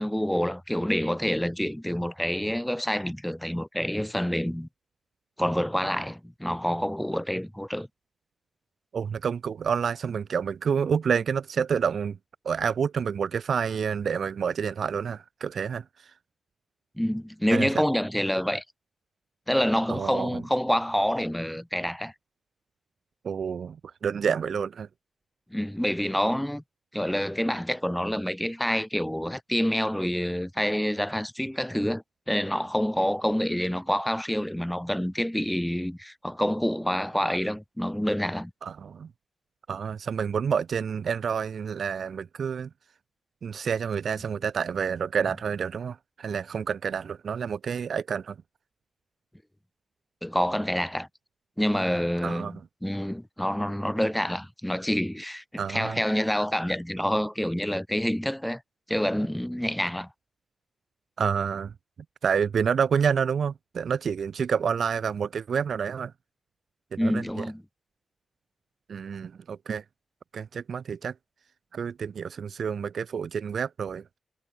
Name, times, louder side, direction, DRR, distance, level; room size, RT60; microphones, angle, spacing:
voice 1, 0.0-4.7 5.4-7.9 17.0-18.6 19.5-22.1 25.5-26.6 26.9-38.5 50.2-51.1 51.6-58.6 58.9-60.1 67.0-67.6, equal, 5° left, 2.7 m, -27 dB
voice 2, 8.9-12.2 12.4-16.1 17.5-17.7 19.9-20.4 23.2-24.9 38.6-39.1 39.7-42.7 43.4-48.4 52.2-52.5 55.6-56.0 61.2-61.7 62.2-66.1 66.9-67.4 68.9-69.8 70.3-71.1 71.7-74.0, right 7 dB, 60° right, 0.4 m, -28 dB
wide cardioid pair, 125°, 0 cm